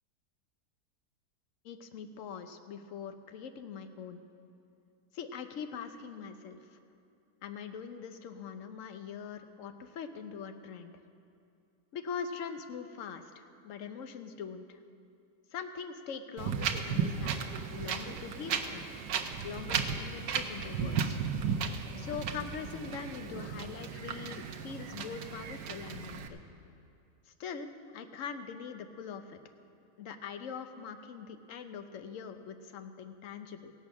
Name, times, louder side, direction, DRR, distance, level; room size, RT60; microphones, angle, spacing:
voice 1, 1.6-4.2 5.1-6.8 7.4-11.0 11.9-14.8 15.5-17.4 17.7-18.9 19.4-21.2 22.0-26.4 27.3-27.7 27.9-29.4 30.0-33.7, left 6 dB, 60° left, 8 dB, 0.9 m, -42 dB
Wind, 16.4-26.3, right 6 dB, 80° right, 1.3 m, -35 dB
16.5 x 8.4 x 6.1 m, 2.5 s
omnidirectional pair, 1.8 m